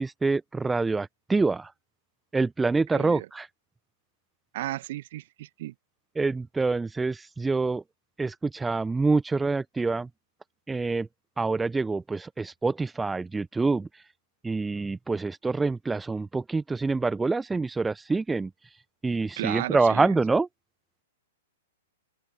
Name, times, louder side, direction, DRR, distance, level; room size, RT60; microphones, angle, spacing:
voice 1, 0.0-1.7 2.3-3.5 6.1-7.8 8.2-10.1 10.7-11.1 11.4-14.0 14.4-18.5 19.0-20.5, right 3 dB, 10° right, 1.2 m, -26 dB
voice 2, 2.9-3.3 4.5-5.7 19.4-20.1, right 15 dB, 45° right, 2.2 m, -34 dB
open air
figure-of-eight pair, 105°, 0 cm